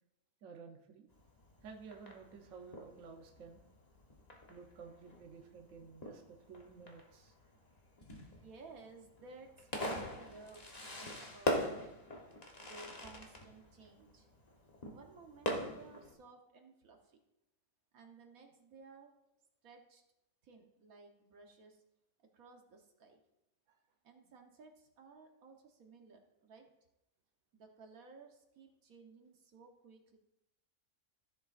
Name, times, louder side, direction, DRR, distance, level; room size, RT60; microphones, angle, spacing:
voice 1, 0.4-1.1 1.6-3.6 4.5-7.3 23.7-23.8, right 5 dB, 65° right, 2 dB, 1.2 m, -53 dB
Fireworks, 1.1-16.1, equal, 30° left, 1.2 m, -43 dB
voice 2, 8.4-12.0 12.6-14.3 14.9-17.2 17.9-19.1 19.6-20.0 20.4-21.8 22.3-23.2 24.0-26.7 27.5-30.2, right 4 dB, 85° right, 3 dB, 1.6 m, -57 dB
14.5 x 6.9 x 2.5 m, 0.87 s
omnidirectional pair, 1.4 m